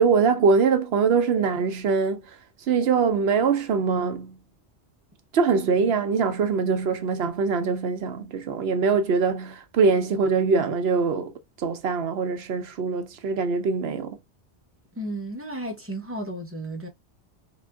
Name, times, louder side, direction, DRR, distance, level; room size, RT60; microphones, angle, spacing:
voice 1, 0.0-2.4 2.7-4.4 5.3-14.2, right 5 dB, 70° right, 0.8 m, -23 dB
voice 2, 15.0-16.9, right 1 dB, 15° right, 0.8 m, -33 dB
3.7 x 2.5 x 2.2 m
omnidirectional pair, 1.1 m